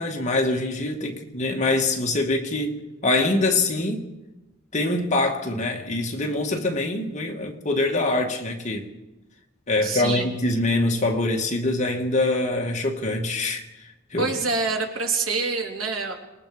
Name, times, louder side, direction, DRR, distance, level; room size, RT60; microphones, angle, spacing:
voice 1, 0.0-4.0 4.7-8.9 9.7-13.6 14.1-14.3, left 2 dB, 35° left, 2.3 m, -24 dB
voice 2, 9.8-10.3 14.2-16.1, right 4 dB, 85° right, 3.5 m, -26 dB
27.0 x 20.0 x 5.2 m
head